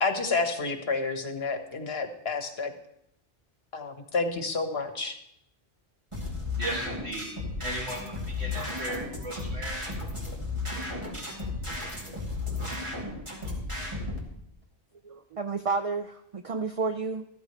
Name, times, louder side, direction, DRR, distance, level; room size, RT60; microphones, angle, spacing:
voice 1, 0.0-2.7 3.7-5.2, left 4 dB, 70° left, 6 dB, 1.5 m, -29 dB
sound 1, 6.1-14.2, left 2 dB, 30° right, 2.5 m, -34 dB
voice 2, 6.6-7.3 7.6-9.8, right 1 dB, 85° right, -3 dB, 2.5 m, -36 dB
voice 3, 15.0-17.3, right 4 dB, 55° right, 8 dB, 0.4 m, -31 dB
14.0 x 13.5 x 3.1 m, 0.78 s
omnidirectional pair, 1.1 m